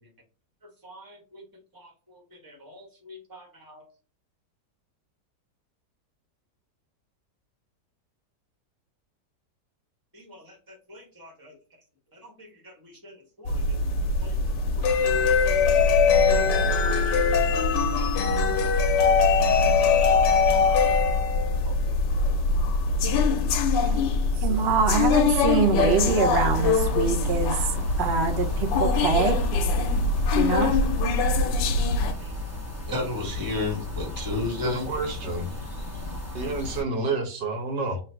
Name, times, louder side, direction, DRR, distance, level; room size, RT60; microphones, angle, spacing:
voice 1, 0.8-1.4 1.7-3.9 10.1-11.6 12.1-13.8 14.2-14.9 16.2-16.5 16.8-17.3 17.7-18.5 18.9-20.8 21.6-21.8 31.4-31.6 31.8-32.4 32.9-34.9, left 2 dB, 15° right, -1 dB, 1.1 m, -37 dB
sound 1, 13.5-32.1, left 4 dB, 80° left, 1.3 m, -22 dB
voice 2, 24.4-29.4 30.3-30.7, right 5 dB, 60° right, 3 dB, 0.6 m, -25 dB
sound 2, 26.0-36.8, left 2 dB, 10° left, 1.1 m, -35 dB
voice 3, 34.6-35.5 36.4-38.0, right 3 dB, 85° right, 3 dB, 1.6 m, -29 dB
3.3 x 2.5 x 4.3 m, 0.36 s
omnidirectional pair, 1.8 m